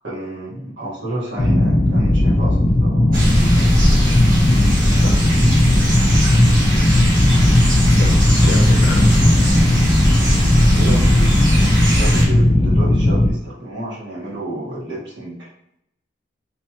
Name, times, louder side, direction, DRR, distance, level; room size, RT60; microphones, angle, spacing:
voice 1, 0.0-3.7 10.7-15.5, right 1 dB, 70° right, -6 dB, 1.3 m, -31 dB
sound 1, 1.4-13.3, left 1 dB, 25° left, 0.3 m, -16 dB
sound 2, 3.1-12.3, equal, 50° right, 1.2 m, -20 dB
voice 2, 5.0-5.4 6.1-7.2 7.9-9.2, left 1 dB, 60° left, 1 dB, 0.6 m, -27 dB
3.2 x 2.2 x 2.9 m, 0.75 s
head